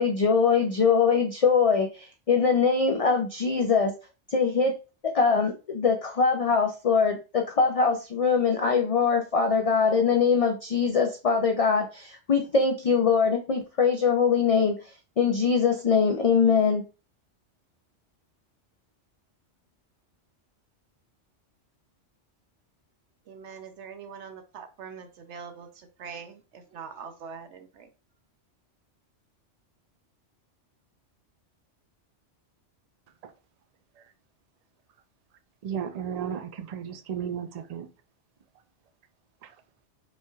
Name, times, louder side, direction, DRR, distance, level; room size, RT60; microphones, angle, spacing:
voice 1, 0.0-3.9 4.3-4.8 5.0-14.8 15.2-16.8, left 5 dB, 50° left, 0.4 m, -22 dB
voice 2, 23.3-27.9, right 6 dB, 75° right, 0.9 m, -43 dB
voice 3, 35.6-37.9 39.4-39.5, right 8 dB, 50° right, 0.4 m, -34 dB
5.4 x 3.2 x 2.3 m
omnidirectional pair, 1.2 m